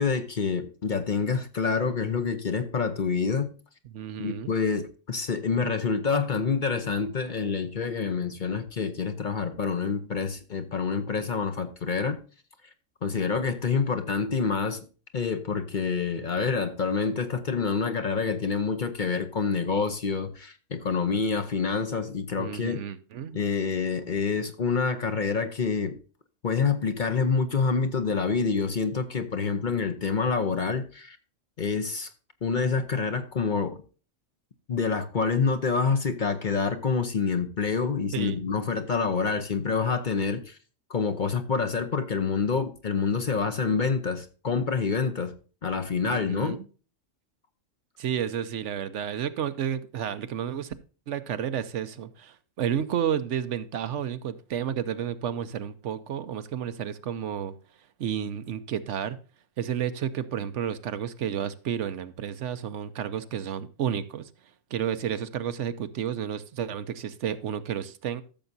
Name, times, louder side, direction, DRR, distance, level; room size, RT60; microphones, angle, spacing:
voice 1, 0.0-3.5 4.2-12.2 13.0-14.8 15.1-22.8 23.3-26.0 26.4-31.2 31.6-32.1 32.4-33.8 34.7-40.6 40.9-45.3 45.6-46.5, left 5 dB, 45° left, 0.8 m, -27 dB
voice 2, 3.8-4.5 22.4-23.4 38.1-38.4 46.0-46.7 48.0-50.7 51.1-57.6 58.0-59.2 59.6-64.3 64.7-68.2, right 9 dB, 70° right, 1.0 m, -31 dB
14.0 x 6.9 x 2.7 m
omnidirectional pair, 1.3 m